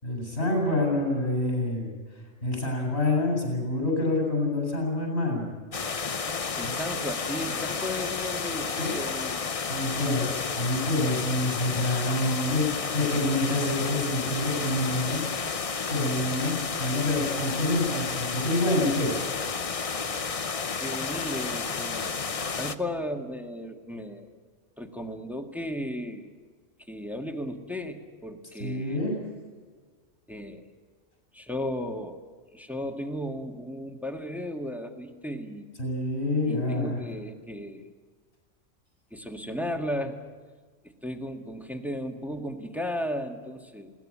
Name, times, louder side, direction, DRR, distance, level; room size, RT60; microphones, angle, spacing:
voice 1, 0.0-1.9 2.4-5.5 6.6-6.7 8.7-8.9 9.7-15.2 15.9-19.3 28.6-29.1 35.8-37.0, left 2 dB, 55° left, 1 dB, 7.6 m, -27 dB
sound 1, 5.7-22.8, left 5 dB, 35° left, 0.7 m, -31 dB
voice 2, 6.5-9.4 20.8-24.4 24.8-26.3 26.9-29.0 30.3-30.6 31.3-32.2 32.5-35.7 36.5-37.9 39.1-40.2 40.8-43.9, left 1 dB, ahead, 4 dB, 1.7 m, -35 dB
21.0 x 18.0 x 8.6 m, 1.5 s
omnidirectional pair, 1.3 m